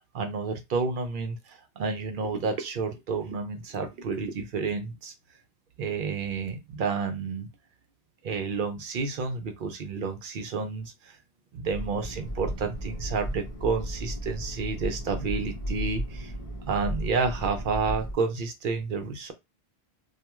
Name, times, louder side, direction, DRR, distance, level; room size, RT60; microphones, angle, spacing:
voice 1, 0.1-5.1 5.8-7.5 8.2-11.2 11.5-16.3 16.7-19.3, right 4 dB, 60° right, 0.6 m, -30 dB
sound 1, 11.7-18.1, equal, 35° left, 0.9 m, -34 dB
2.3 x 2.2 x 2.9 m
omnidirectional pair, 1.1 m